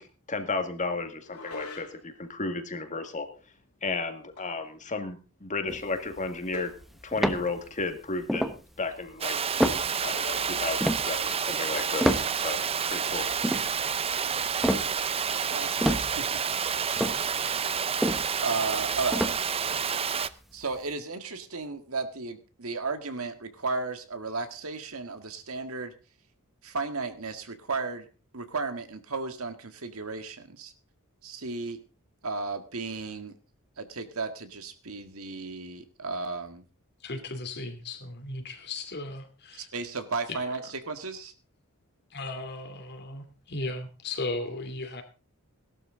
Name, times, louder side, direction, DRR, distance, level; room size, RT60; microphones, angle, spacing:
voice 1, 0.0-3.3 3.8-6.7 7.0-8.5 8.8-9.4 10.0-13.7, left 3 dB, 35° left, 7 dB, 1.9 m, -33 dB
sound 1, 1.2-2.2 4.4-4.7 5.0-5.1 6.5-6.9, left 3 dB, 80° left, 4.3 m, -41 dB
sound 2, 5.7-7.9 8.2-8.6 9.1-9.2 9.4-12.8 13.1-15.5 15.8-19.8 20.2-20.3, equal, ahead, 1.1 m, -29 dB
Water, 9.2-20.3, right 7 dB, 25° right, 0.6 m, -29 dB
voice 2, 15.5-16.4 18.4-19.2 20.5-25.9 26.6-28.1 28.3-30.7 31.2-31.8 32.2-33.3 33.8-36.6 39.6-40.6 40.9-41.3, right 4 dB, 70° right, 8 dB, 1.8 m, -34 dB
voice 3, 37.0-39.7 40.3-40.6 42.1-45.0, left 2 dB, 50° left, 7 dB, 2.6 m, -36 dB
18.0 x 12.0 x 3.9 m, 0.33 s
head